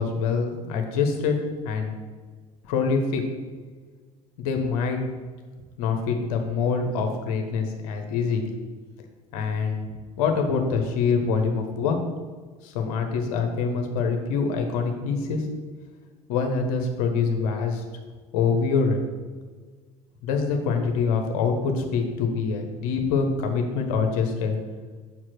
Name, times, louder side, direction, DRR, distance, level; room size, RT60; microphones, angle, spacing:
voice 1, 0.0-1.4 1.6-1.9 2.7-3.2 4.4-5.0 5.8-8.4 9.3-9.9 10.2-12.0 12.6-15.5 16.3-17.8 18.3-19.0 20.2-24.6, left 5 dB, 60° left, 4 dB, 1.3 m, -25 dB
7.1 x 4.7 x 6.1 m, 1.4 s
figure-of-eight pair, 65°, 19 cm